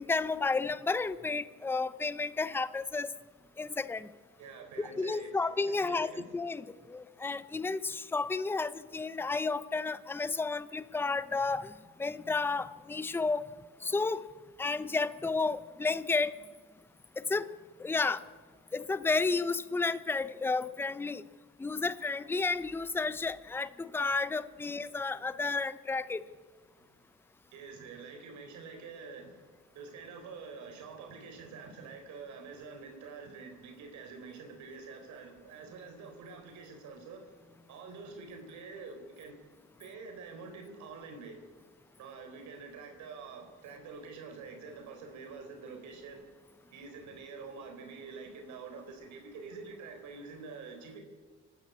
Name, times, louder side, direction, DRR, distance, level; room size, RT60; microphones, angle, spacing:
voice 1, 0.0-3.1 3.6-4.1 4.8-11.7 12.0-13.4 13.8-14.2 14.6-16.3 17.2-17.5 17.8-18.2 18.7-21.2 21.6-26.2, left 3 dB, 10° left, 15 dB, 0.5 m, -32 dB
voice 2, 4.4-5.5 5.8-6.2 26.8-26.9 27.5-29.5 29.7-37.3 37.7-39.4 39.8-41.4 42.0-46.3 46.7-51.0, right 4 dB, 80° right, 4 dB, 3.9 m, -47 dB
25.5 x 12.5 x 8.4 m, 1.5 s
cardioid pair, 140°, 29 cm